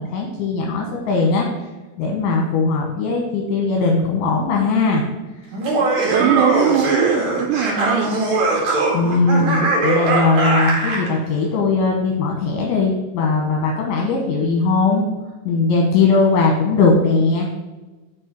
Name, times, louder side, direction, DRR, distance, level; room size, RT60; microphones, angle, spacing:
voice 1, 0.0-1.5 2.0-5.0 8.9-15.0 15.4-17.5, left 3 dB, 75° left, 0 dB, 3.3 m, -19 dB
Laughter, 5.5-11.1, right 2 dB, 50° right, 2.4 m, -20 dB
voice 2, 6.1-8.2, right 8 dB, 80° right, 2 dB, 2.6 m, -20 dB
7.0 x 5.4 x 6.2 m, 1.2 s
omnidirectional pair, 5.9 m